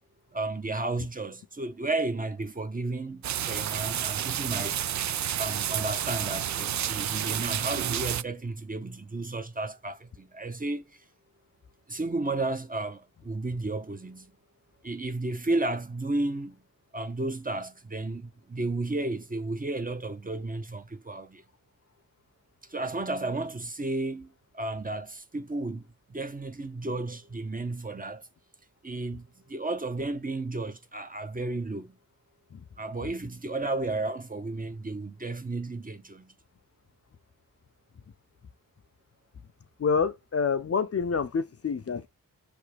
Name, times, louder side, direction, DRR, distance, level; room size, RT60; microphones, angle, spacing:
voice 1, 0.3-4.8 5.4-11.0 11.9-14.3 14.8-16.6 16.9-21.4 22.7-28.3 28.8-32.0 32.8-36.3, right 2 dB, 25° right, 0.8 m, -33 dB
sound 1, 3.2-8.2, right 10 dB, 55° right, 0.4 m, -30 dB
voice 2, 39.8-42.1, left 5 dB, 45° left, 0.7 m, -27 dB
5.7 x 3.5 x 5.1 m
cardioid pair, 70°, 35 cm